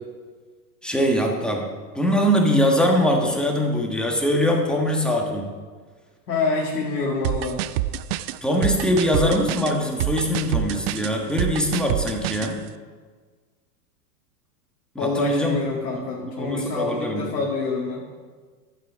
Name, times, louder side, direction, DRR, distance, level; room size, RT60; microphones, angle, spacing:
voice 1, 0.8-1.7 1.9-5.5 8.4-12.6 14.9-15.6 15.9-16.0 16.3-17.2, equal, ahead, 0 dB, 1.5 m, -22 dB
voice 2, 6.3-7.6 15.0-18.0, left 3 dB, 80° left, -4 dB, 2.2 m, -26 dB
sound 1, 7.2-12.5, right 13 dB, 40° right, 0.4 m, -26 dB
11.5 x 7.6 x 4.8 m, 1.5 s
hypercardioid pair, 100°, 49 cm